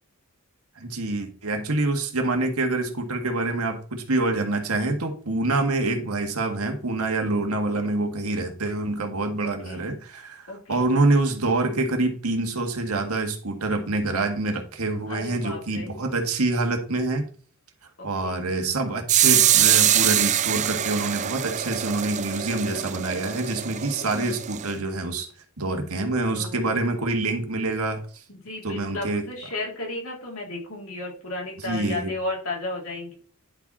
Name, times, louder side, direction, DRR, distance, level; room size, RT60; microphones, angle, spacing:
voice 1, 0.8-17.2 18.0-25.3 25.6-28.0 28.6-29.2 31.6-32.1, right 2 dB, 80° right, 4 dB, 1.8 m, -26 dB
voice 2, 9.4-9.9 10.5-10.9 15.1-15.9 18.0-18.5 23.8-24.2 26.3-26.6 28.3-33.1, left 2 dB, 65° left, -2 dB, 3.5 m, -34 dB
sound 1, 19.1-24.7, right 11 dB, 35° right, 0.4 m, -23 dB
10.5 x 5.1 x 4.2 m, 0.41 s
head